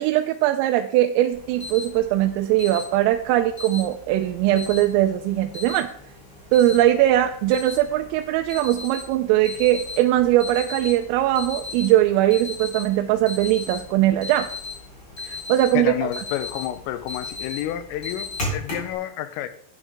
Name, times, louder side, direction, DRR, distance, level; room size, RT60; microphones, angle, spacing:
voice 1, 0.0-5.9 6.5-14.5 15.2-15.9, right 13 dB, 90° right, 5 dB, 3.2 m, -20 dB
Alarm, 1.3-18.9, left 3 dB, 20° left, 3.8 m, -37 dB
voice 2, 15.7-19.5, left 12 dB, 85° left, 11 dB, 3.4 m, -29 dB
11.0 x 11.0 x 3.6 m, 0.63 s
omnidirectional pair, 5.8 m